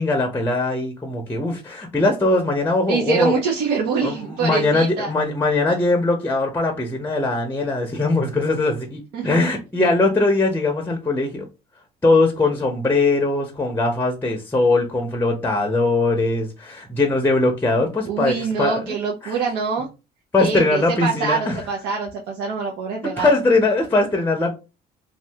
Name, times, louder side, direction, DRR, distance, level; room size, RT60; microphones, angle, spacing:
voice 1, 0.0-3.3 4.0-11.4 12.0-19.0 19.2-19.4 20.3-21.7 23.2-24.6, left 2 dB, 10° left, 0.7 m, -20 dB
voice 2, 2.9-5.1 9.1-9.4 18.1-19.9 20.4-23.3, right 5 dB, 80° right, 0.7 m, -25 dB
2.7 x 2.4 x 3.4 m
cardioid pair, 110°, 17 cm